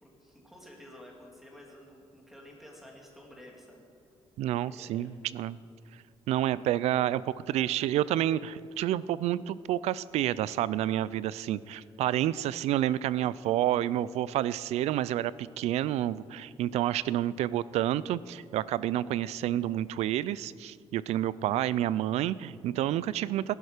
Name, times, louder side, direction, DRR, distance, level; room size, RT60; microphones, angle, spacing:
voice 1, 0.0-3.8 4.7-5.1, left 1 dB, 5° right, -1 dB, 2.2 m, -51 dB
voice 2, 4.4-5.6 6.3-23.5, right 12 dB, 80° right, 19 dB, 0.4 m, -29 dB
17.0 x 11.0 x 5.0 m, 2.3 s
cardioid pair, 165°, 11 cm